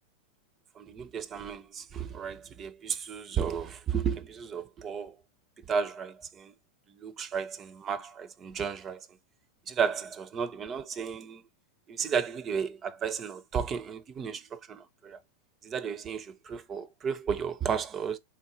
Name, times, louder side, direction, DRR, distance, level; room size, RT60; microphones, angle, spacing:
voice 1, 0.8-5.2 5.7-6.5 7.0-9.1 9.7-11.4 11.9-15.2 15.6-18.2, right 7 dB, 25° right, 0.4 m, -33 dB
4.4 x 3.5 x 2.5 m
figure-of-eight pair, 90°, 0 cm